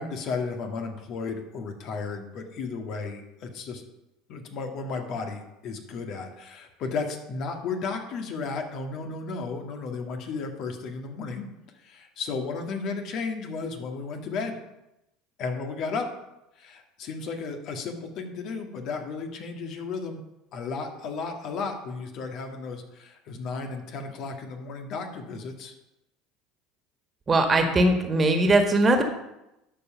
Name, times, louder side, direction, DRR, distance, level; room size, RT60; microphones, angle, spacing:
voice 1, 0.0-3.8 4.3-11.5 11.8-14.6 15.4-16.1 16.6-20.2 20.5-25.7, left 4 dB, 55° left, 4 dB, 1.8 m, -34 dB
voice 2, 27.3-29.0, right 2 dB, 30° right, 5 dB, 1.8 m, -20 dB
12.5 x 5.3 x 5.7 m, 0.90 s
hypercardioid pair, 75°, 0 cm